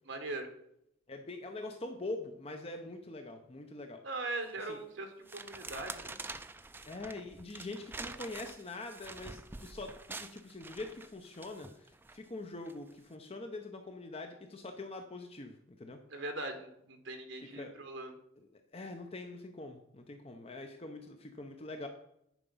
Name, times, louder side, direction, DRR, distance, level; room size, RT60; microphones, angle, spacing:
voice 1, 0.0-0.5 4.0-6.2 16.1-18.1, right 2 dB, 65° right, 6 dB, 1.5 m, -40 dB
voice 2, 1.1-4.0 4.7-4.8 6.9-16.0 17.5-17.7 18.7-21.9, left 2 dB, 30° left, 5 dB, 0.6 m, -44 dB
sound 1, 4.5-4.7 5.3-12.2 12.6-12.9, right 3 dB, 10° right, 0.3 m, -46 dB
10.0 x 5.0 x 5.4 m, 0.78 s
head